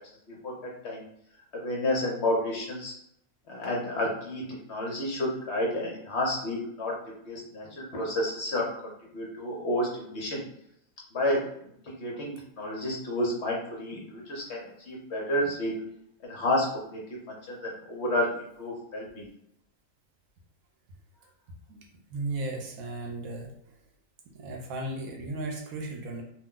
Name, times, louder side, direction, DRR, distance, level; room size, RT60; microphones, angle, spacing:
voice 1, 1.6-2.9 3.5-4.4 4.7-6.9 7.3-10.4 11.1-11.4 12.0-15.7 16.2-17.0 17.5-18.3 18.6-19.2, left 1 dB, 55° left, -2 dB, 0.9 m, -30 dB
voice 2, 22.1-23.5 24.3-26.2, right 2 dB, 75° right, 1 dB, 1.0 m, -35 dB
2.6 x 2.1 x 3.6 m, 0.72 s
omnidirectional pair, 1.5 m